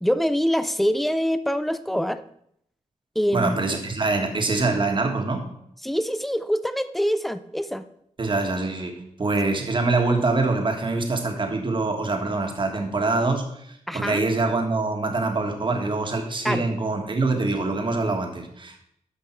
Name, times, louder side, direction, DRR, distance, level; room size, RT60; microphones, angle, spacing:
voice 1, 0.0-2.2 3.2-3.6 5.8-7.9 13.9-14.2 16.4-16.7, equal, ahead, 12 dB, 0.5 m, -24 dB
voice 2, 3.3-5.5 8.2-18.8, right 3 dB, 40° right, 3 dB, 1.6 m, -24 dB
13.0 x 5.4 x 4.5 m, 0.72 s
wide cardioid pair, 115°, 13 cm